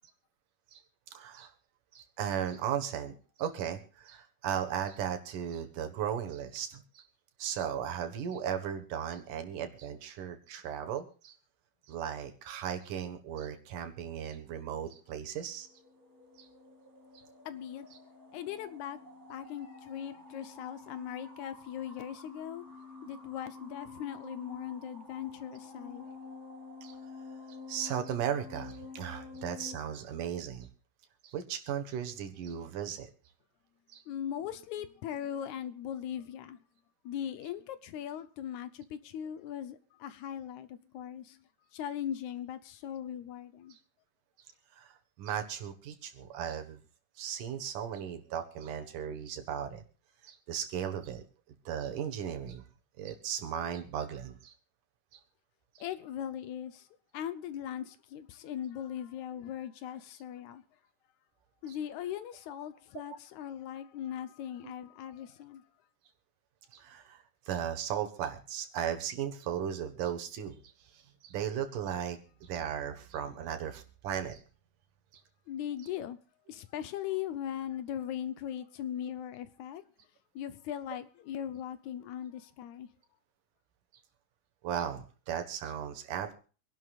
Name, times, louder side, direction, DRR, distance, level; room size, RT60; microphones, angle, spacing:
voice 1, 1.1-1.5 1.9-7.0 7.4-11.3 11.9-15.7 16.4-16.5 26.8-27.0 27.7-30.7 31.2-33.1 33.9-34.0 43.7-43.8 44.7-46.8 47.2-49.8 50.2-51.2 51.7-52.7 53.0-54.5 55.1-55.2 61.7-61.8 66.7-70.6 70.9-74.4 75.1-75.2 84.6-86.3, right 9 dB, 85° right, 3.0 m, -36 dB
sound 1, 15.1-29.8, left 3 dB, 10° right, 1.7 m, -49 dB
voice 2, 17.5-17.9 18.3-19.0 19.3-22.8 23.0-26.1 34.1-36.6 37.0-41.4 41.7-43.8 55.8-56.9 57.1-60.6 61.6-65.6 75.5-76.2 76.5-79.8 80.4-82.9, left 10 dB, 75° left, 2.1 m, -39 dB
26.0 x 11.5 x 2.4 m
omnidirectional pair, 3.6 m